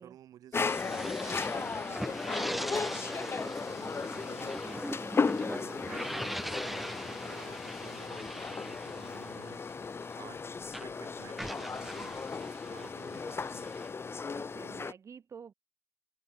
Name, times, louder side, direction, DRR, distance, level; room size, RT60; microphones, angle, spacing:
voice 1, 0.0-4.6 5.5-9.6 10.2-10.5 10.8-13.8, right 11 dB, 75° right, 6.6 m, -53 dB
sound 1, 0.5-14.9, left 5 dB, 40° left, 1.3 m, -36 dB
sound 2, 0.6-10.4 10.7-14.5, equal, ahead, 0.5 m, -41 dB
sound 3, 1.9-8.1, left 14 dB, 80° left, 0.9 m, -54 dB
voice 2, 4.6-4.9 6.7-6.8 14.3-15.5, right 6 dB, 55° right, 2.0 m, -50 dB
supercardioid pair, 50°, 6 cm